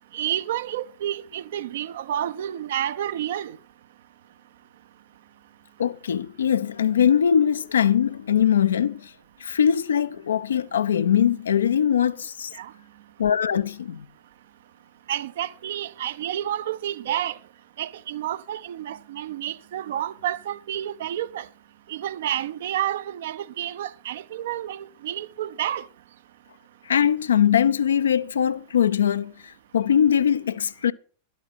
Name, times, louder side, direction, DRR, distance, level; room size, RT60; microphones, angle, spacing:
voice 1, 0.1-3.6 12.5-12.7 15.1-17.4 17.8-21.5 21.9-25.9, right 11 dB, 60° right, 0.5 m, -30 dB
voice 2, 5.8-9.1 9.4-12.5 13.2-14.1 26.9-30.9, left 8 dB, 70° left, 0.5 m, -21 dB
11.5 x 8.3 x 6.1 m
figure-of-eight pair, 90°, 0 cm